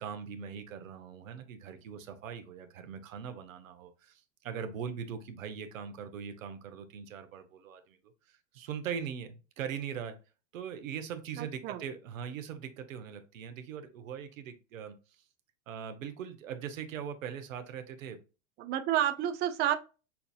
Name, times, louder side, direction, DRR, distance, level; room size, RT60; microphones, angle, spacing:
voice 1, 0.0-8.0 8.3-10.2 10.5-14.9 15.7-18.2, right 7 dB, 80° right, 9 dB, 0.8 m, -41 dB
voice 2, 11.4-11.8 18.6-19.8, right 11 dB, 25° right, 8 dB, 0.4 m, -30 dB
5.6 x 2.6 x 2.3 m, 0.32 s
hypercardioid pair, 105°, 39 cm